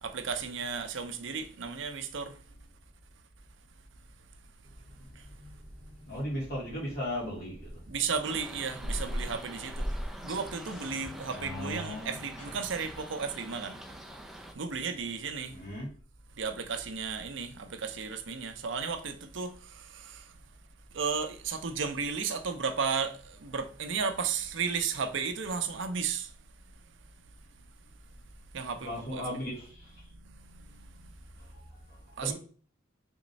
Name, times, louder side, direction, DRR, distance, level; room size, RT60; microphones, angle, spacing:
voice 1, 0.0-2.3 7.9-9.9 10.2-13.8 14.6-15.6 16.4-20.2 20.9-26.3 28.5-29.5 32.2-32.3, right 5 dB, 70° right, 0.6 m, -34 dB
sound 1, 4.6-13.0, equal, 30° left, 2.0 m, -42 dB
voice 2, 6.1-7.7 11.3-12.2 15.5-15.9 28.8-29.9 31.5-31.6 31.9-32.3, left 1 dB, 50° left, 2.3 m, -36 dB
sound 2, 8.2-14.5, right 1 dB, ahead, 0.4 m, -46 dB
3.6 x 3.1 x 4.0 m
head